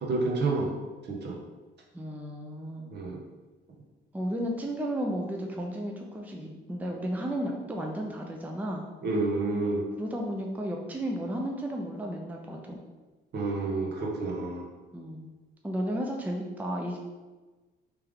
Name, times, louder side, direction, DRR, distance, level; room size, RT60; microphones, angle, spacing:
voice 1, 0.0-0.7 1.1-1.3 2.9-3.2 9.0-9.8 13.3-14.6, right 3 dB, 60° right, 0 dB, 0.9 m, -29 dB
voice 2, 1.9-2.9 4.1-8.8 10.0-12.8 14.9-15.3 15.6-17.0, equal, 10° right, 1 dB, 0.5 m, -33 dB
3.3 x 3.3 x 3.6 m, 1.3 s
cardioid pair, 90°, 20 cm